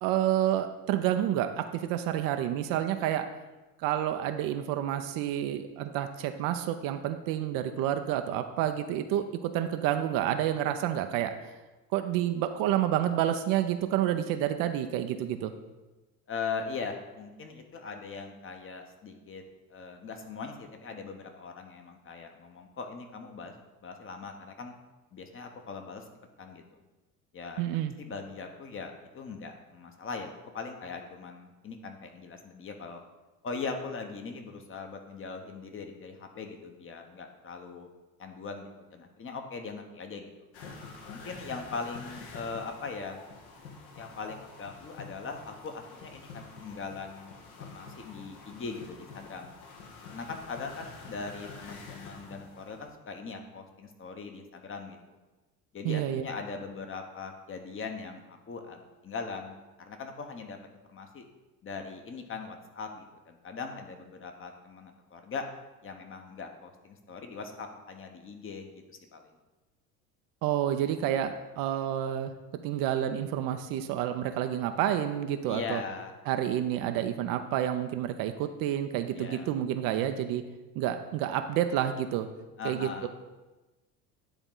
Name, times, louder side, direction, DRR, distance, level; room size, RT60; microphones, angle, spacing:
voice 1, 0.0-3.3 3.8-11.3 11.9-15.5 27.6-27.9 55.8-56.2 70.4-72.3 72.6-75.8 76.3-80.4 80.8-82.3 82.6-83.1, right 11 dB, 50° right, 8 dB, 0.6 m, -29 dB
voice 2, 16.3-19.4 19.7-23.5 23.8-24.8 25.1-26.0 26.4-26.6 27.3-27.6 28.0-33.0 33.4-37.9 38.2-40.5 41.0-43.2 44.0-47.3 47.6-49.5 50.1-55.2 55.7-60.6 60.9-61.2 61.6-65.5 65.8-69.3 75.5-76.1 79.1-79.5 82.6-83.1, left 4 dB, 30° left, 5 dB, 1.0 m, -40 dB
sound 1, 40.5-52.9, left 4 dB, 65° left, 1.3 m, -47 dB
10.0 x 3.9 x 3.8 m, 1.1 s
hypercardioid pair, 70°, 44 cm